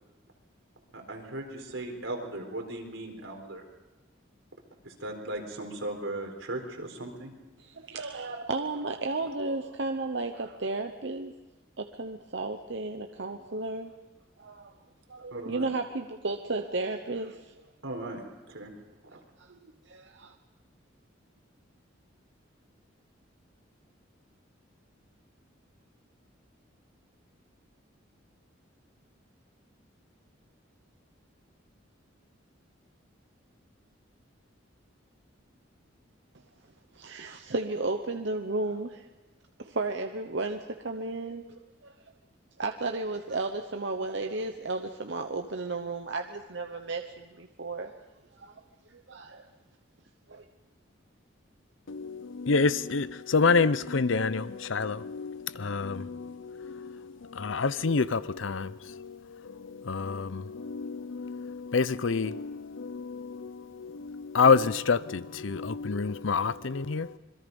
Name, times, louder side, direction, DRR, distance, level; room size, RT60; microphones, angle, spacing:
voice 1, 0.9-3.6 4.8-7.3 15.3-15.7 17.8-18.7 19.1-19.2, right 1 dB, 85° right, 4.1 m, -37 dB
voice 2, 7.6-11.3 11.8-13.9 14.4-14.7 15.1-17.5 19.4-19.6 19.9-20.3 36.9-39.0 39.6-41.9 42.6-47.9 48.4-49.5 50.3-50.5, right 3 dB, 60° right, 1.0 m, -34 dB
voice 3, 51.9-67.2, left 4 dB, 75° left, 0.7 m, -28 dB
26.5 x 22.0 x 5.4 m
head